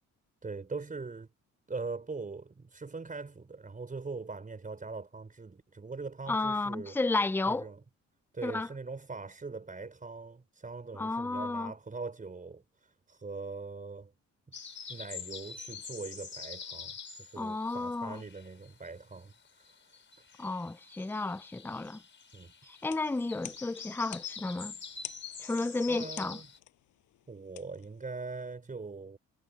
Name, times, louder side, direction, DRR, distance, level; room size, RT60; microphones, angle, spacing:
voice 1, 0.4-1.3 1.7-7.0 7.5-7.8 8.3-14.1 14.9-19.8 22.3-22.5 25.9-26.5 27.3-29.2, right 4 dB, 25° right, 5.5 m, -42 dB
voice 2, 6.3-7.7 8.4-8.7 10.9-11.7 17.4-18.2 20.4-22.0 22.7-24.7 25.4-26.4, left 3 dB, 5° left, 0.6 m, -32 dB
sound 1, 14.5-18.9 19.1-26.6, left 6 dB, 40° left, 5.5 m, -46 dB
sound 2, 22.7-28.5, left 14 dB, 85° left, 5.9 m, -50 dB
cardioid pair, 90°, 30 cm